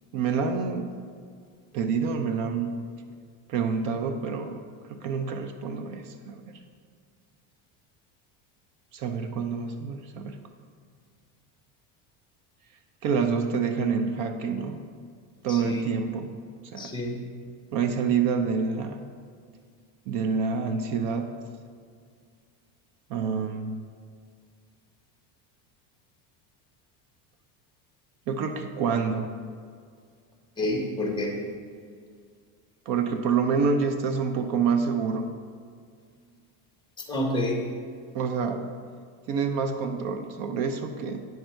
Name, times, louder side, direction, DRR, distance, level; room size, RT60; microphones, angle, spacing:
voice 1, 0.1-1.0 1.7-2.8 3.5-4.6 4.9-6.6 8.9-10.4 13.0-14.9 15.4-16.3 16.7-16.9 17.7-19.0 20.1-21.3 23.1-23.9 28.3-29.3 32.9-35.3 38.1-38.6 39.3-41.3, right 5 dB, 55° right, 7 dB, 0.7 m, -27 dB
voice 2, 15.5-15.8 16.8-17.2 30.6-31.4 37.1-37.6, left 1 dB, 10° left, 2 dB, 1.2 m, -28 dB
9.3 x 6.4 x 4.5 m, 2.1 s
cardioid pair, 145°, 39 cm